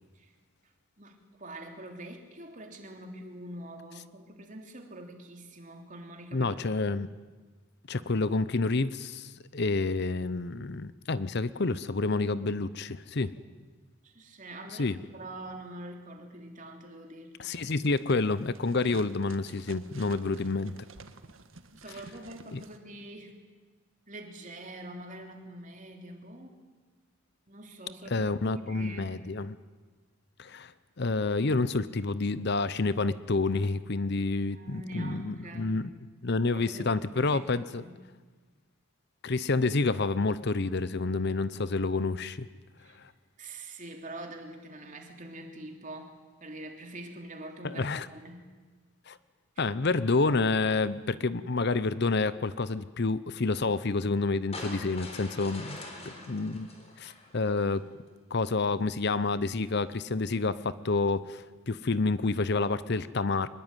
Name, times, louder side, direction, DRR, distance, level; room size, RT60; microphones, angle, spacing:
voice 1, 1.0-6.9 13.3-13.5 14.0-17.6 20.0-20.3 21.7-23.4 24.1-26.6 27.5-29.2 34.5-35.8 36.5-38.0 42.8-43.0 43.4-48.5 55.9-56.4, right 1 dB, 35° right, 3 dB, 3.2 m, -45 dB
voice 2, 6.3-7.1 7.9-13.3 14.8-15.0 17.4-20.7 22.5-22.6 28.1-29.6 30.4-30.7 31.0-35.9 36.2-37.8 39.2-42.5 43.0-43.1 47.6-48.1 49.1-49.2 49.6-55.8 56.3-56.7 57.0-57.8 58.3-63.5, left 3 dB, 50° left, 16 dB, 0.8 m, -29 dB
sound 1, 17.5-22.8, right 3 dB, 70° right, 1.6 m, -52 dB
sound 2, 54.5-57.8, left 2 dB, 30° left, 3.9 m, -44 dB
24.5 x 21.0 x 9.2 m, 1.4 s
head